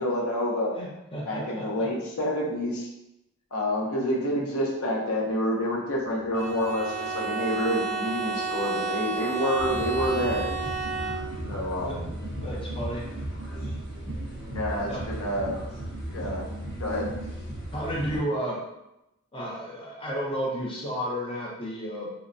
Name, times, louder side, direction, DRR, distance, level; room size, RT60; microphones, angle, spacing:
voice 1, 0.0-0.7 1.2-2.9 3.5-10.5 11.5-12.1 12.5-12.6 14.5-15.6 16.1-16.4 16.8-17.1, equal, 85° left, -2 dB, 0.7 m, -28 dB
voice 2, 0.8-1.9 11.8-12.0 12.4-13.1 14.9-15.2 17.7-18.6 19.3-22.1, equal, 25° left, -3 dB, 0.6 m, -32 dB
sound 1, 6.0-17.1, left 1 dB, 55° left, 1.4 m, -46 dB
Bowed string instrument, 6.3-11.6, right 4 dB, 65° right, 0.4 m, -31 dB
sound 2, 9.6-18.2, right 1 dB, ahead, 0.8 m, -35 dB
2.9 x 2.1 x 2.5 m, 0.90 s
head